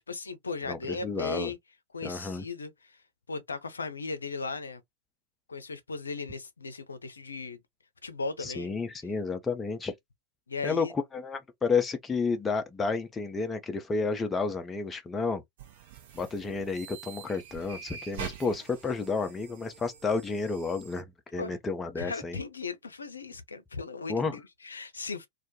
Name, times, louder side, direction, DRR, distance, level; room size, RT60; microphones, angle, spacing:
voice 1, 0.0-1.6 1.9-2.7 3.3-4.8 5.5-7.6 8.0-8.7 10.5-10.9 21.4-21.6 22.0-25.3, left 4 dB, 75° left, 0.5 m, -37 dB
voice 2, 0.7-1.5 2.0-2.4 8.4-9.9 10.6-15.4 16.1-21.1 21.3-22.4 24.1-24.4, left 4 dB, 15° left, 0.4 m, -31 dB
sound 1, 15.6-21.0, right 8 dB, 50° right, 0.6 m, -45 dB
2.2 x 2.1 x 2.7 m
figure-of-eight pair, 90°, 0 cm